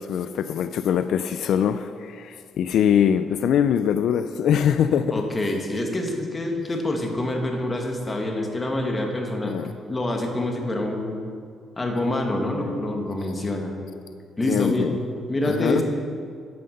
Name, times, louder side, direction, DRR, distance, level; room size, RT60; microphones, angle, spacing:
voice 1, 0.0-5.2 9.4-9.7 12.6-12.8 14.5-15.0 15.5-15.8, left 8 dB, 75° left, 0.3 m, -23 dB
voice 2, 5.1-9.6 9.9-11.2 11.8-13.7 14.4-14.9 15.3-15.8, left 1 dB, 25° left, 1.6 m, -26 dB
9.3 x 5.7 x 6.5 m
cardioid pair, 90°, 0 cm